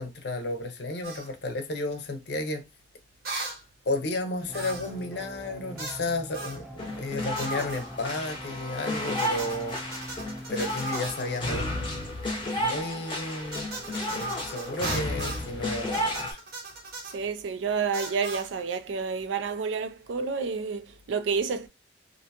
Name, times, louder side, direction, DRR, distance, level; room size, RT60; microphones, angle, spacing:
voice 1, 0.0-2.7 3.9-9.8 10.5-11.7 12.5-13.7 14.1-16.4, left 2 dB, 60° left, 0.6 m, -32 dB
sound 1, 1.0-1.3 3.2-3.6 4.5-5.0 5.8-6.0 6.3-6.6 7.3-7.9 9.2-11.3 13.5-15.5 15.9-17.2 17.9-18.5, right 3 dB, 55° right, 0.8 m, -38 dB
sound 2, 4.5-12.4, equal, 5° right, 0.3 m, -44 dB
sound 3, 6.8-16.3, left 1 dB, 25° left, 0.7 m, -32 dB
voice 2, 17.0-21.7, right 5 dB, 80° right, 0.4 m, -29 dB
2.6 x 2.2 x 2.7 m
head